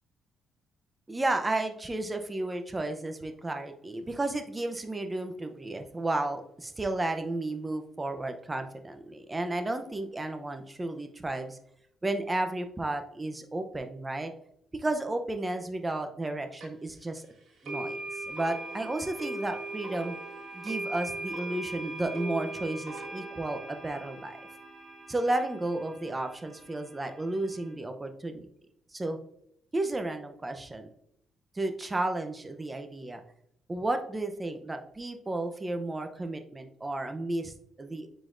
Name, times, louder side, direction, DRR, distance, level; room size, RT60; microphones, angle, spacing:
voice 1, 1.1-11.6 12.0-14.3 14.7-17.2 17.6-20.2 20.5-24.4 25.1-28.5 28.9-29.2 29.7-30.9 31.5-33.2 33.7-38.1, right 2 dB, 20° right, 6 dB, 0.7 m, -33 dB
sound 1, 16.6-16.7 17.6-27.7, right 2 dB, 70° right, 1.7 m, -40 dB
9.6 x 3.9 x 2.6 m, 0.73 s
cardioid pair, 90°, 0 cm